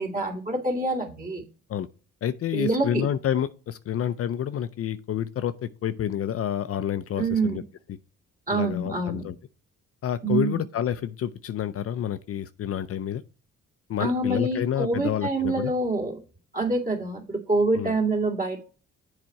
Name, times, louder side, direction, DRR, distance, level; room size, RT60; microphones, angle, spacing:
voice 1, 0.0-1.4 2.5-3.0 7.2-7.6 8.5-9.2 10.2-10.6 14.0-16.2 16.5-18.6, right 2 dB, 25° right, 2.3 m, -26 dB
voice 2, 2.2-7.6 8.5-9.4 10.0-13.2 13.9-15.7 17.7-17.9, left 10 dB, 50° left, 0.5 m, -29 dB
7.6 x 4.2 x 4.7 m
cardioid pair, 90°, 30 cm